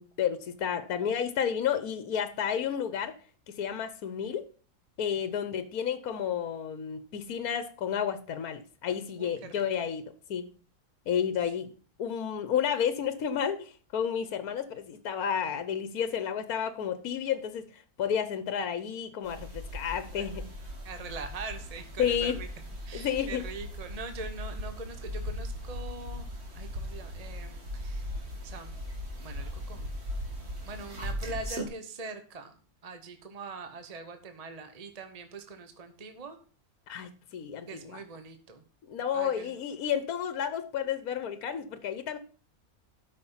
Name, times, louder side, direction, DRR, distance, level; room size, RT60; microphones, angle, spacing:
voice 1, 0.0-3.1 3.5-4.4 5.0-10.4 11.1-11.7 12.0-20.4 22.0-22.4 22.9-23.4 36.9-38.0 38.9-42.2, left 8 dB, 75° left, 12 dB, 1.4 m, -31 dB
voice 2, 9.2-9.9 20.1-20.3 20.8-22.5 22.9-28.1 28.4-28.7 29.2-29.9 30.6-32.5 32.8-36.4 37.7-38.6 39.1-39.5, right 4 dB, 30° right, 8 dB, 1.1 m, -43 dB
sound 1, 19.2-31.6, equal, 45° right, 2.2 m, -38 dB
12.5 x 5.7 x 5.7 m, 0.38 s
omnidirectional pair, 1.6 m